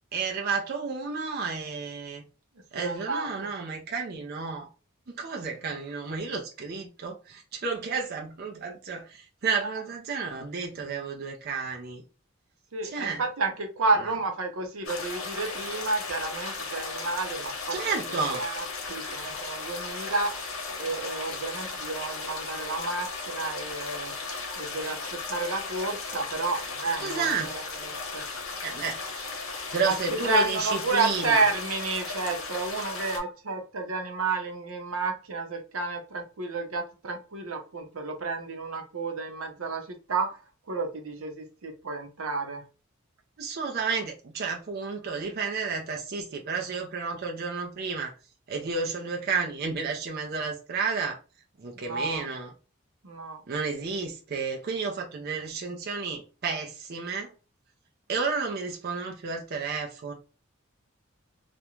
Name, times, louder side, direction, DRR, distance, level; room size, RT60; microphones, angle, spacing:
voice 1, 0.1-2.2 2.7-4.7 5.1-12.0 12.8-13.2 17.7-18.5 27.0-27.5 28.6-29.0 29.7-31.4 43.4-48.1 48.5-51.2 51.6-52.5 53.5-57.3 58.1-60.1, right 5 dB, 50° right, 0.5 m, -31 dB
voice 2, 2.7-3.5 9.6-9.7 12.7-17.8 18.3-20.5 20.8-24.1 24.6-28.2 29.8-40.4 40.7-42.6 51.8-52.2 53.0-53.4, right 3 dB, 90° right, 0.7 m, -31 dB
sound 1, 14.8-33.2, left 4 dB, 85° left, 0.8 m, -36 dB
2.5 x 2.1 x 2.9 m
head